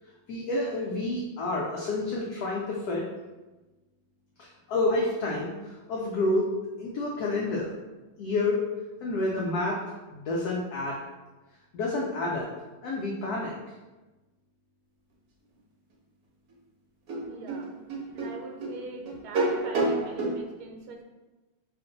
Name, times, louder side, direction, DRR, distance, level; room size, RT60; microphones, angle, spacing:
voice 1, 0.3-3.0 4.4-6.5 6.8-7.7 8.2-8.6 9.0-9.8 10.1-11.0 11.7-12.5 12.8-13.5, left 2 dB, 90° left, -3 dB, 0.8 m, -29 dB
sound 1, 16.5-16.6 17.1-20.4, right 2 dB, 60° right, 1.0 m, -29 dB
voice 2, 17.2-17.7 18.1-21.0, right 3 dB, 85° right, 2 dB, 1.4 m, -43 dB
3.0 x 2.5 x 3.8 m, 1.1 s
omnidirectional pair, 2.2 m